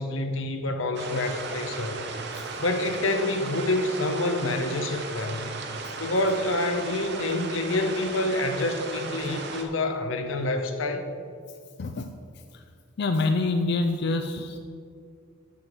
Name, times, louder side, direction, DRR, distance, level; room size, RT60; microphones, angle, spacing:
voice 1, 0.0-2.0 2.6-5.5 6.0-11.1, left 2 dB, 90° left, 7 dB, 0.9 m, -27 dB
sound 1, 0.9-9.6, right 3 dB, 60° right, 0.9 m, -36 dB
voice 2, 11.8-12.1 12.5-12.6 13.0-14.6, left 3 dB, 60° left, 7 dB, 0.5 m, -26 dB
7.2 x 6.2 x 7.6 m, 2.2 s
head